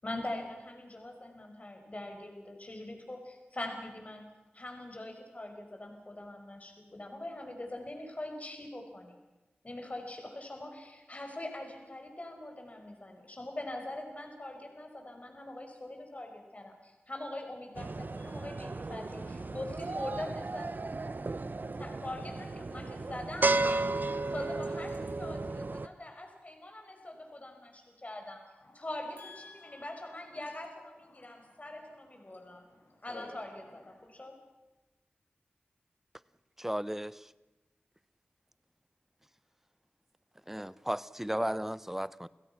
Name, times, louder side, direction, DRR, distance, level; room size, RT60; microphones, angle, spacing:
voice 1, 0.0-4.3 4.5-9.2 9.6-20.7 21.8-23.6 24.3-28.4 28.7-32.6 33.0-34.4, left 1 dB, 40° left, 5.4 m, -43 dB
sound 1, 17.8-25.9, right 3 dB, 55° right, 0.9 m, -34 dB
voice 2, 18.2-19.6 21.2-21.5 22.7-25.0 28.6-28.8 29.2-30.1 30.4-33.3 33.7-34.0, left 2 dB, 65° left, 5.5 m, -56 dB
voice 3, 36.6-37.3 40.5-42.3, equal, 10° right, 0.8 m, -35 dB
29.5 x 16.5 x 6.0 m
cardioid pair, 50°, 4 cm